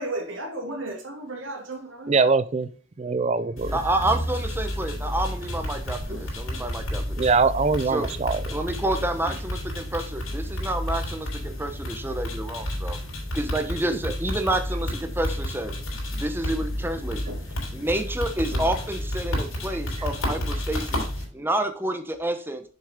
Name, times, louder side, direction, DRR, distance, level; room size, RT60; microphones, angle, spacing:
voice 1, 0.0-2.2 5.0-5.1 6.1-6.2 17.3-17.4 18.5-18.6 20.3-20.5, right 2 dB, 70° right, 2.5 m, -34 dB
voice 2, 2.1-2.7 3.0-3.8 7.1-8.6, right 4 dB, 30° right, 0.4 m, -22 dB
sound 1, 3.6-21.2, left 1 dB, 90° left, 4.1 m, -31 dB
voice 3, 3.7-7.2 7.9-8.1 8.5-13.0 13.3-15.7 16.1-17.2 17.7-21.0 21.3-22.6, right 1 dB, 10° right, 0.8 m, -29 dB
7.1 x 6.1 x 3.6 m
head